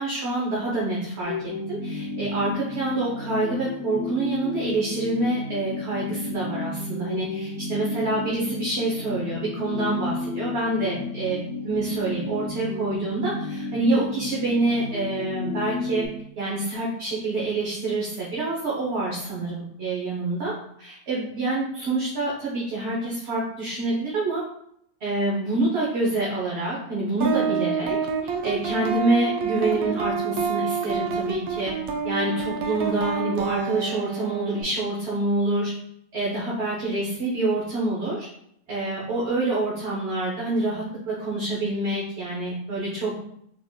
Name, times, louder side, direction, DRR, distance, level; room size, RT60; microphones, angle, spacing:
voice 1, 0.0-11.4 11.6-16.1 16.4-24.4 25.0-28.0 28.2-31.8 32.0-35.7 36.1-38.3 38.7-43.1, right 2 dB, 55° right, -6 dB, 1.1 m, -27 dB
sound 1, 1.2-16.1, left 3 dB, 65° left, 0.9 m, -32 dB
sound 2, 27.2-34.6, right 5 dB, 85° right, 1.0 m, -28 dB
3.8 x 3.6 x 2.3 m, 0.72 s
omnidirectional pair, 1.5 m